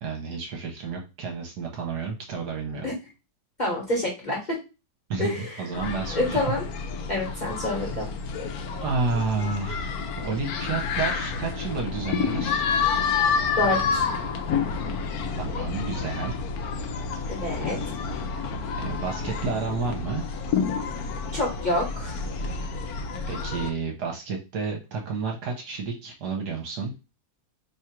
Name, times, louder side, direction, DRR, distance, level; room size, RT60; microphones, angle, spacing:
voice 1, 0.0-2.9 5.1-6.4 8.8-12.6 15.4-16.4 18.8-20.2 23.3-26.9, right 4 dB, 65° right, 1 dB, 1.3 m, -31 dB
voice 2, 3.6-4.6 5.2-5.6 6.1-6.7 7.1-8.1 13.6-14.0 17.3-17.8 21.3-22.2, left 1 dB, 30° left, -4 dB, 1.2 m, -27 dB
sound 1, 5.7-23.7, left 5 dB, 70° left, 0.9 m, -29 dB
3.1 x 2.4 x 4.3 m, 0.28 s
omnidirectional pair, 2.0 m